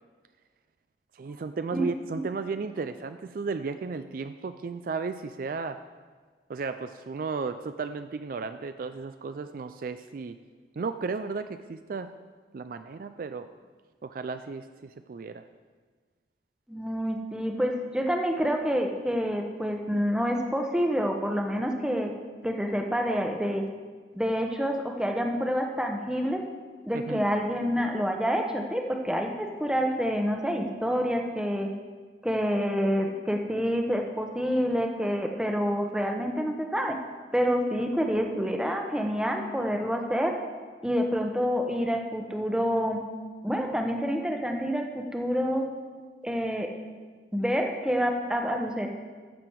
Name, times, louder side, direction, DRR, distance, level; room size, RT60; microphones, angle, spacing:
voice 1, 1.1-5.8 6.5-10.4 10.8-12.1 12.5-13.5 14.0-15.5 26.9-27.2, right 4 dB, 50° right, 10 dB, 0.4 m, -34 dB
voice 2, 1.7-2.2 16.7-22.1 22.4-23.6 24.1-26.4 26.9-31.7 32.2-37.0 37.3-40.3 40.8-43.0 43.4-45.7 46.2-46.7 47.3-48.9, equal, 5° right, 3 dB, 0.9 m, -27 dB
14.5 x 7.0 x 4.7 m, 1.5 s
head